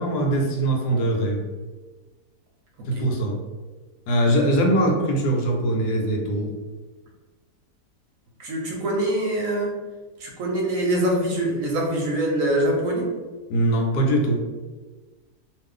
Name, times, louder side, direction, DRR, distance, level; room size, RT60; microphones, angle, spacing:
voice 1, 0.0-1.4 2.9-3.4 4.1-6.5 13.5-14.4, right 1 dB, 90° left, 1 dB, 1.2 m, -22 dB
voice 2, 8.4-9.7 10.2-13.1, right 1 dB, 65° right, -1 dB, 0.9 m, -24 dB
2.6 x 2.4 x 3.6 m, 1.3 s
omnidirectional pair, 1.7 m